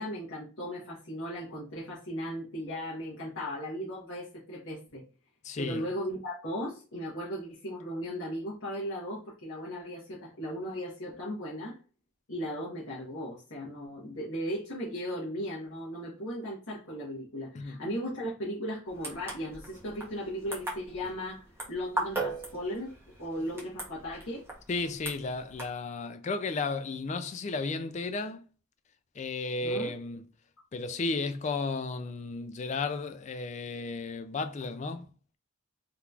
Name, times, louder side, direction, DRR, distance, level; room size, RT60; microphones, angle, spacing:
voice 1, 0.0-5.0 5.6-11.8 12.3-22.9 23.2-24.4 29.6-29.9, equal, 70° left, 1.1 m, -37 dB
voice 2, 5.4-5.8 17.5-17.8 24.7-28.4 29.2-30.3 30.7-35.1, left 3 dB, 35° left, 0.4 m, -34 dB
sound 1, 18.9-25.7, right 2 dB, 10° right, 0.9 m, -39 dB
3.6 x 2.9 x 2.4 m
head